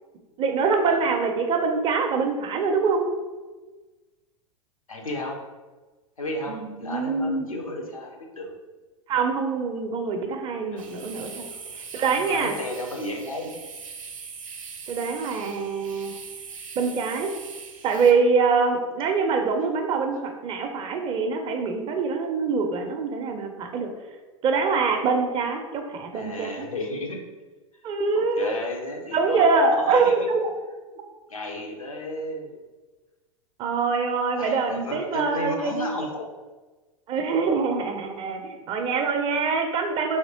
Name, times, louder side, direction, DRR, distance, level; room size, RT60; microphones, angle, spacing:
voice 1, 0.4-3.0 6.5-7.5 9.1-11.5 11.9-12.6 14.9-16.2 16.8-17.3 17.8-23.9 24.4-26.7 27.8-28.6 29.1-30.5 33.6-35.9 37.1-40.2, right 4 dB, 30° right, 5 dB, 0.5 m, -24 dB
voice 2, 4.9-5.4 6.2-8.5 10.7-10.9 11.7-11.8 12.3-13.6 26.1-27.2 28.1-30.3 31.3-32.6 34.4-36.3, left 1 dB, 90° left, 1 dB, 0.6 m, -33 dB
sound 1, 10.8-18.1, right 5 dB, 75° right, 0.6 m, -41 dB
3.5 x 2.9 x 2.7 m, 1.3 s
figure-of-eight pair, 90°, 17 cm